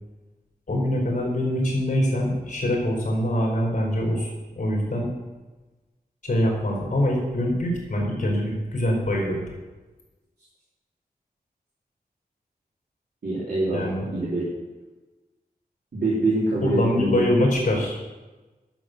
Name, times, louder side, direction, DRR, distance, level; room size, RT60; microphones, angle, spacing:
voice 1, 0.7-5.1 6.2-9.4 13.7-14.1 16.6-18.1, left 1 dB, 50° left, -1 dB, 4.4 m, -24 dB
voice 2, 13.2-14.5 15.9-17.2, right 2 dB, 85° right, -7 dB, 3.5 m, -25 dB
12.0 x 7.8 x 6.6 m, 1.2 s
wide cardioid pair, 100°, 16 cm